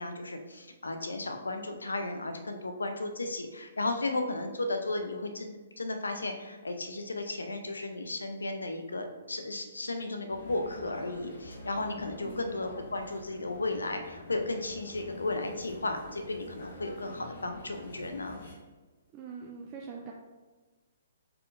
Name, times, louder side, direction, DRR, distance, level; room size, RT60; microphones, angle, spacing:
voice 1, 0.0-18.4, left 2 dB, 75° left, 6 dB, 0.5 m, -34 dB
sound 1, 10.3-18.5, left 2 dB, 55° left, 1.3 m, -47 dB
voice 2, 12.2-12.6 19.1-20.1, right 5 dB, 30° right, 0 dB, 0.4 m, -43 dB
4.5 x 3.7 x 2.5 m, 1.3 s
figure-of-eight pair, 125°, 0 cm